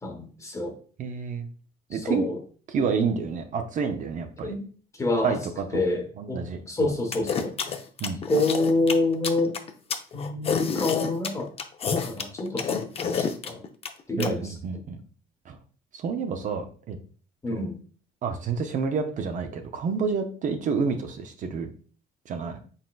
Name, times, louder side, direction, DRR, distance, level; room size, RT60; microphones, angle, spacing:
voice 1, 0.0-0.7 1.9-2.4 4.4-4.6 5.0-5.4 5.7-7.5 8.3-9.5 10.1-11.5 11.9-13.6 14.1-14.5 17.4-17.8, left 2 dB, 20° left, 4 dB, 1.0 m, -27 dB
voice 2, 1.0-1.5 1.9-2.3 2.7-4.5 5.2-5.8 6.2-6.9 8.0-8.2 14.2-15.0 15.5-15.6 15.9-17.0 17.5-17.7 18.2-21.7 22.3-22.6, right 5 dB, 50° right, 6 dB, 0.6 m, -29 dB
sound 1, 7.1-14.3, left 6 dB, 35° left, 0.5 m, -28 dB
4.1 x 3.7 x 2.4 m, 0.41 s
cardioid pair, 110°, 17 cm